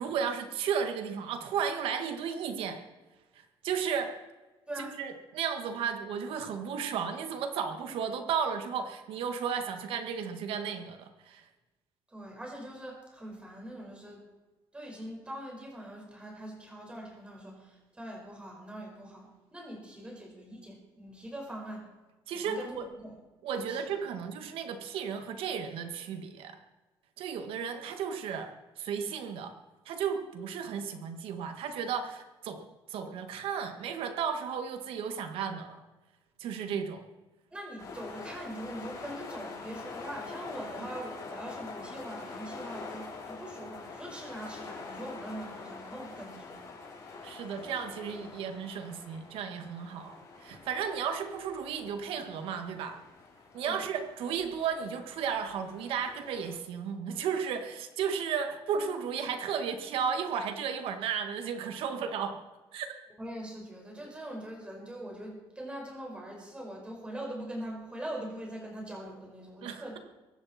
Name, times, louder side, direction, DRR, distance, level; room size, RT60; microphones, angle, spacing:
voice 1, 0.0-2.8 3.3-4.1 4.8-11.5 22.3-22.9 23.4-26.6 27.2-29.5 29.9-35.8 36.4-37.1 47.2-53.0 53.5-62.4 62.7-62.9 69.6-70.0, right 7 dB, 75° right, 6 dB, 1.8 m, -34 dB
voice 2, 12.1-14.2 14.7-21.8 22.3-23.1 23.5-23.9 37.5-46.5 53.6-53.8 63.2-70.0, right 1 dB, 10° right, -1 dB, 5.0 m, -42 dB
sound 1, 37.8-56.6, left 4 dB, 40° left, 6.2 m, -45 dB
23.5 x 12.0 x 4.4 m, 1.1 s
cardioid pair, 155°, 9 cm